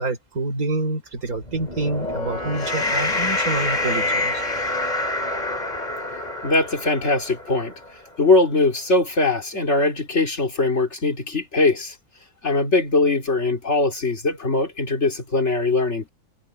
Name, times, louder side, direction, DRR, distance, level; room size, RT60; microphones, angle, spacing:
voice 1, 0.0-4.4, right 2 dB, 75° right, 4.6 m, -27 dB
sound 1, 1.3-7.9, left 2 dB, 30° left, 2.5 m, -26 dB
voice 2, 6.4-7.7 8.2-11.9 12.4-16.1, left 3 dB, 50° left, 3.9 m, -21 dB
omnidirectional pair, 1.5 m